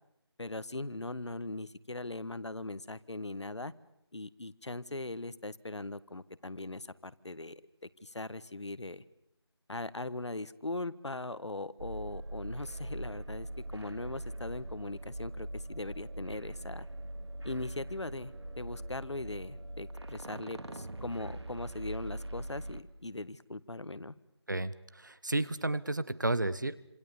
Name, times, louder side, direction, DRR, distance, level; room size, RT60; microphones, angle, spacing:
voice 1, 0.4-3.7 4.1-7.6 8.0-9.0 9.7-16.9 17.4-24.1, left 2 dB, 80° left, 16 dB, 1.6 m, -40 dB
sound 1, 11.8-22.8, right 1 dB, 70° right, 2.6 m, -42 dB
voice 2, 24.5-26.8, right 2 dB, 45° right, 16 dB, 1.2 m, -32 dB
28.5 x 27.0 x 7.1 m, 0.80 s
figure-of-eight pair, 180°, 14 cm